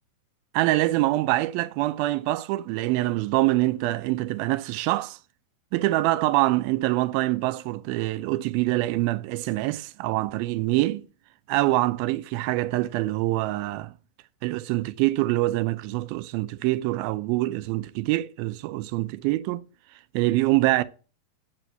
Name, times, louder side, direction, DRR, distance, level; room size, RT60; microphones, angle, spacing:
voice 1, 0.5-5.2 5.7-11.1 11.5-13.9 14.4-19.6 20.1-20.8, right 18 dB, 85° right, 2.5 m, -25 dB
9.1 x 5.3 x 7.8 m
omnidirectional pair, 4.1 m